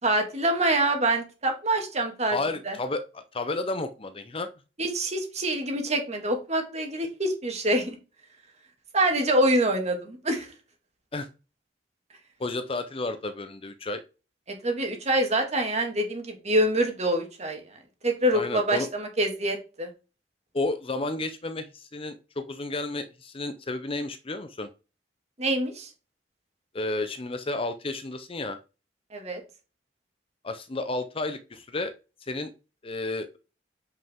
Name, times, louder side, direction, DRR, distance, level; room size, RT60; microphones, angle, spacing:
voice 1, 0.0-2.4 2.7-2.8 4.8-8.0 8.9-10.5 14.5-17.6 18.0-19.9 25.4-25.9 29.1-29.4, right 1 dB, 40° right, 3 dB, 2.2 m, -25 dB
voice 2, 2.3-4.5 11.1-11.3 12.4-14.0 18.3-18.9 20.5-24.7 26.7-28.6 30.4-31.9 32.3-32.5 32.8-33.4, left 2 dB, 30° left, 9 dB, 0.7 m, -32 dB
8.3 x 5.5 x 3.7 m, 0.31 s
head